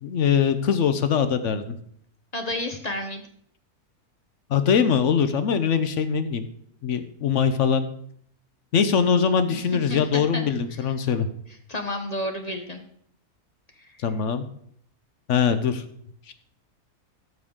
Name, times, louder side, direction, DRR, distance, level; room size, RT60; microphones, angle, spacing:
voice 1, 0.0-1.8 4.5-6.4 6.8-7.9 8.7-11.3 14.0-14.4 15.3-15.8 16.3-16.4, left 7 dB, 60° left, 10 dB, 0.9 m, -22 dB
voice 2, 2.3-3.2 9.5-9.6 9.9-10.4 11.7-12.8 13.8-14.0, left 1 dB, 35° left, 5 dB, 0.7 m, -31 dB
13.5 x 6.3 x 3.6 m, 0.65 s
omnidirectional pair, 1.6 m